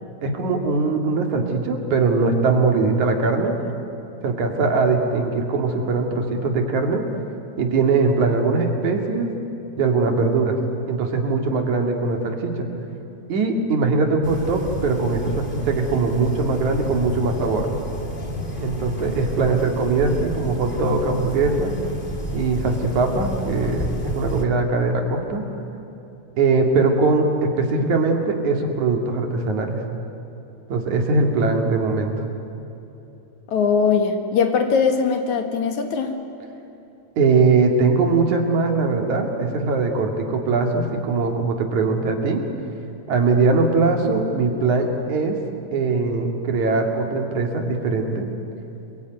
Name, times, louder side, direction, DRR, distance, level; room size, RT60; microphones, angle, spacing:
voice 1, 0.2-3.6 4.2-7.1 7.6-9.3 9.8-10.6 10.9-12.7 13.3-17.7 18.6-21.8 22.3-25.5 26.4-29.8 30.7-32.3 37.2-42.5 43.1-45.4 45.7-48.3, right 3 dB, 65° right, 3 dB, 3.7 m, -21 dB
sound 1, 14.2-24.4, equal, 20° left, 1.6 m, -31 dB
voice 2, 33.5-36.2, left 5 dB, 70° left, 6 dB, 3.0 m, -20 dB
28.0 x 22.0 x 9.4 m, 3.0 s
omnidirectional pair, 3.7 m